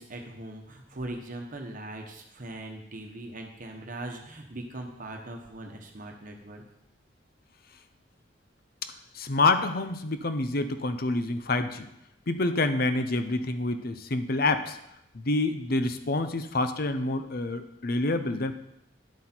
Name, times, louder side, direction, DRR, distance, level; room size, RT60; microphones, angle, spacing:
voice 1, 0.0-6.6, right 1 dB, 45° right, 2 dB, 1.2 m, -40 dB
voice 2, 9.1-11.9 12.3-14.8 15.1-18.5, left 2 dB, 50° left, 10 dB, 0.7 m, -27 dB
10.5 x 7.8 x 4.5 m, 0.81 s
head